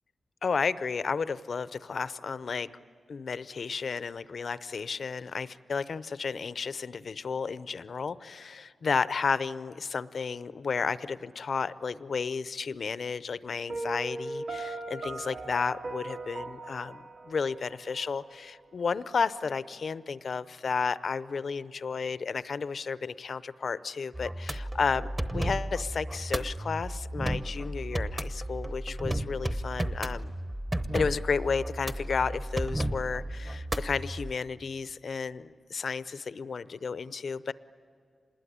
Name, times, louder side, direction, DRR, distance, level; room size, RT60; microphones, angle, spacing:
voice 1, 0.4-2.7 3.1-30.3 30.9-37.5, left 5 dB, 60° left, 15 dB, 0.6 m, -32 dB
Piano, 13.7-18.6, right 2 dB, 90° right, 2.3 m, -39 dB
sound 1, 24.1-34.3, right 1 dB, 15° right, 0.9 m, -33 dB
26.5 x 20.5 x 10.0 m, 2.4 s
wide cardioid pair, 125°, 0 cm